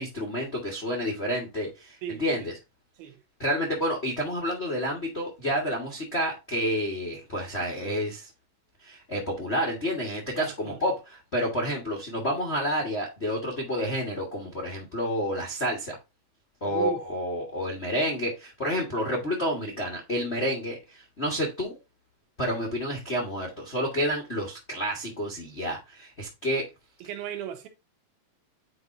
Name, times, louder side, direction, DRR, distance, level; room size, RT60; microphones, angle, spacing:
voice 1, 0.0-2.5 3.4-8.3 8.8-16.0 16.6-21.7 22.4-26.6, equal, 45° left, 0.8 m, -29 dB
voice 2, 2.0-2.5 3.0-3.2 10.4-10.8 16.6-17.0 27.0-27.7, right 9 dB, 85° right, 3.1 m, -36 dB
9.3 x 4.4 x 2.7 m
omnidirectional pair, 4.2 m